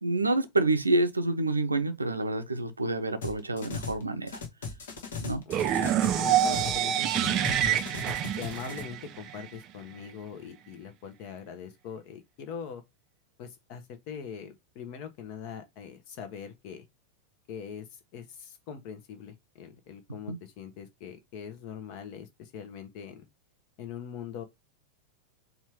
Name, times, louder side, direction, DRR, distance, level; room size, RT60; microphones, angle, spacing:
voice 1, 0.0-4.4 5.2-5.4 20.3-20.4, right 2 dB, 80° right, 0.6 m, -28 dB
sound 1, 3.2-4.0 4.3-6.8 7.1-8.8, left 4 dB, 60° left, 1.2 m, -38 dB
voice 2, 5.4-7.8 8.4-12.8 13.4-16.9 17.5-23.3 23.8-24.4, left 7 dB, 45° left, 1.0 m, -42 dB
sound 2, 5.5-9.5, right 10 dB, 35° right, 0.5 m, -27 dB
4.3 x 2.5 x 4.6 m
figure-of-eight pair, 90°, 0 cm